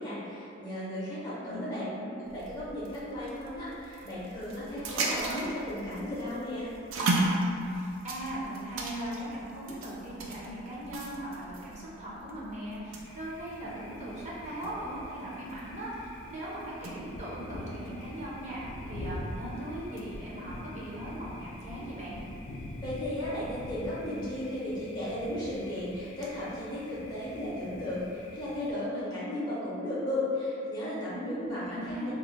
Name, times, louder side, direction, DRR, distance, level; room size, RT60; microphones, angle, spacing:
voice 1, 0.0-1.8 2.3-6.7 22.8-32.1, left 1 dB, 20° left, -9 dB, 0.5 m, -35 dB
voice 2, 1.4-2.2 4.9-5.5 7.6-22.2 31.1-32.1, right 1 dB, 35° right, -7 dB, 0.6 m, -39 dB
sound 1, 2.2-17.1, right 1 dB, 85° right, 0.4 m, -36 dB
Thunder, 13.0-28.7, left 1 dB, 85° left, 0.4 m, -45 dB
2.4 x 2.0 x 3.8 m, 2.5 s
head